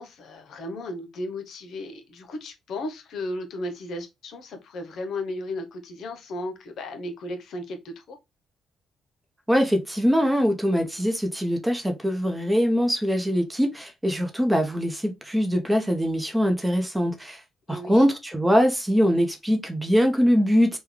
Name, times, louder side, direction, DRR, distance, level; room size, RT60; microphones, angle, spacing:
voice 1, 0.0-8.2 17.7-18.0, left 1 dB, 70° left, 0.8 m, -35 dB
voice 2, 9.5-17.4 17.7-20.8, equal, 10° right, 0.7 m, -22 dB
3.6 x 2.2 x 3.1 m
cardioid pair, 90°, 0 cm